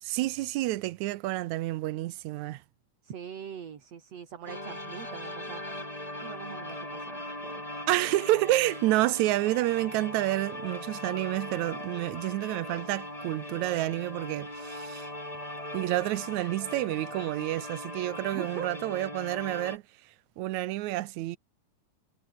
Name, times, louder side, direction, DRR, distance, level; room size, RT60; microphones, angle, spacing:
voice 1, 0.0-2.6 7.9-15.1 15.7-19.8 20.4-21.4, right 17 dB, 75° right, 1.9 m, -29 dB
voice 2, 3.0-5.9 6.2-7.6 18.3-18.7, right 8 dB, 55° right, 3.3 m, -42 dB
sound 1, 4.5-19.8, left 1 dB, 10° left, 5.5 m, -40 dB
omnidirectional pair, 3.6 m